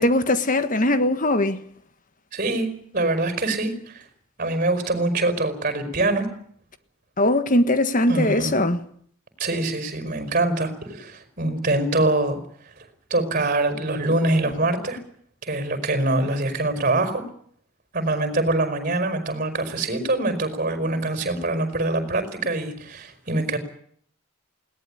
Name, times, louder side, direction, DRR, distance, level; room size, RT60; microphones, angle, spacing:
voice 1, 0.0-1.6 7.2-8.8, left 1 dB, 40° left, 1.5 m, -20 dB
voice 2, 2.3-4.0 4.4-6.3 8.1-8.6 9.4-12.4 13.1-15.0 15.4-17.2 17.9-23.6, right 2 dB, 40° right, 5.1 m, -24 dB
21.0 x 18.5 x 9.9 m
head